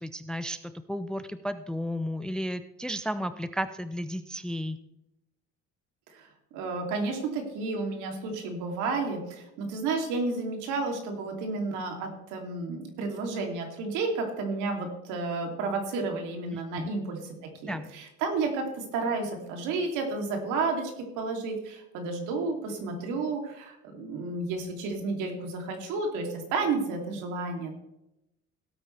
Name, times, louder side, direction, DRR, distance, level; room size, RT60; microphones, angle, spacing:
voice 1, 0.0-4.8 16.5-16.9 17.6-17.9, equal, 5° left, 12 dB, 0.4 m, -33 dB
voice 2, 6.5-17.2 17.6-27.7, right 3 dB, 75° right, 2 dB, 3.0 m, -31 dB
17.5 x 8.5 x 3.4 m, 0.89 s
cardioid pair, 130°, 30 cm